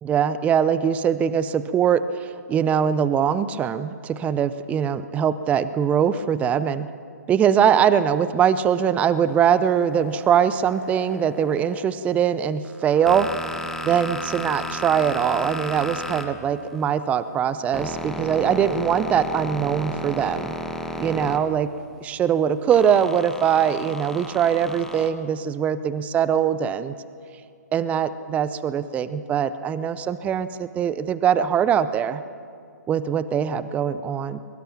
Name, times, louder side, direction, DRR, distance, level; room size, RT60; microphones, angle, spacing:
voice 1, 0.0-6.9 7.3-13.3 13.8-20.5 21.0-21.7 22.0-26.9 27.7-32.2 32.9-34.4, right 8 dB, 15° right, 14 dB, 0.7 m, -22 dB
sound 1, 9.8-11.8 12.6-16.9 17.3-21.9 22.7-25.1, left 1 dB, 5° left, 1.4 m, -34 dB
22.5 x 22.5 x 7.3 m, 2.4 s
figure-of-eight pair, 130°, 10 cm